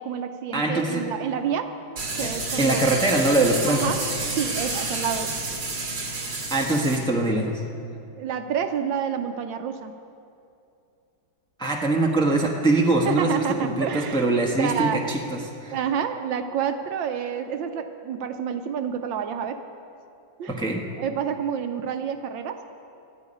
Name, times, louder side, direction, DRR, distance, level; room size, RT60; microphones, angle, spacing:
voice 1, 0.0-2.9 3.7-4.0 4.4-5.4 8.2-9.9 13.1-14.3 14.5-15.0 15.7-19.6 20.4-20.5 21.0-22.7, right 8 dB, 75° right, 7 dB, 1.4 m, -29 dB
voice 2, 0.5-1.1 2.2-3.9 6.5-7.6 11.6-15.8 20.5-20.9, right 2 dB, 5° left, 0 dB, 0.9 m, -23 dB
sound 1, 2.0-7.0, right 3 dB, 60° right, 2.9 m, -30 dB
13.0 x 9.7 x 9.8 m, 2.6 s
omnidirectional pair, 2.2 m